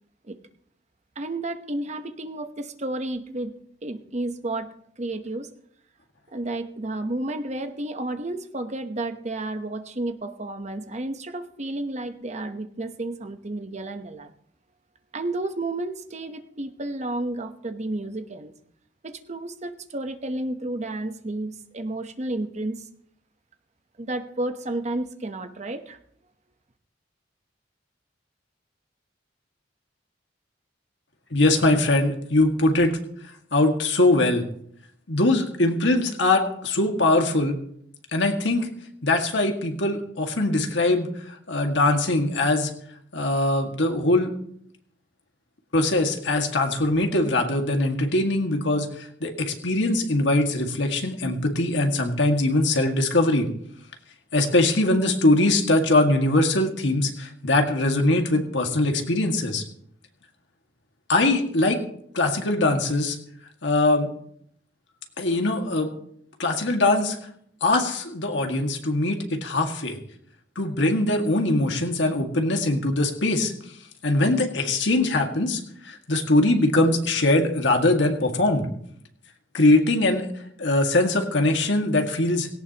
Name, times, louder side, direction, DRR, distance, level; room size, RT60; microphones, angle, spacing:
voice 1, 1.2-3.5 3.8-4.7 5.0-5.5 6.3-14.3 15.1-18.5 19.0-22.9 24.0-26.0, right 2 dB, 35° right, 8 dB, 1.0 m, -31 dB
voice 2, 31.3-33.0 33.5-34.5 35.1-37.6 38.1-38.7 39.0-41.1 41.5-42.7 43.1-44.3 45.7-53.5 54.3-59.6 61.1-61.8 62.1-63.2 63.6-64.1 65.2-65.9 66.4-67.2 67.6-70.0 70.6-73.5 74.0-78.7 79.5-80.3 80.6-82.5, left 2 dB, 70° left, 3 dB, 1.9 m, -22 dB
17.5 x 17.5 x 2.9 m, 0.68 s
head